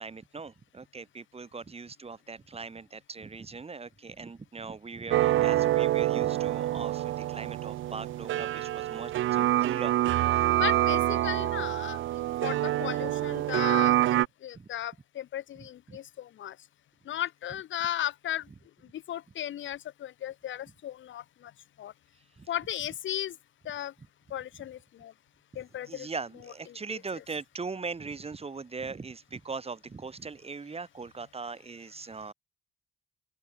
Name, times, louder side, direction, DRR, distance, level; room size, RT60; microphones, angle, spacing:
voice 1, 0.0-10.5 12.3-12.4 14.5-14.7 15.9-16.0 22.4-22.5 25.5-32.3, right 4 dB, 30° right, 6.4 m, -40 dB
sound 1, 5.1-14.3, right 14 dB, 80° right, 1.2 m, -26 dB
voice 2, 10.6-12.0 12.4-16.5 17.1-18.4 18.9-21.5 21.8-21.9 22.5-23.3 23.6-23.9 24.3-25.1 25.5-26.1 26.9-27.0, left 11 dB, 75° left, 6.8 m, -36 dB
open air
cardioid pair, 90°, 20 cm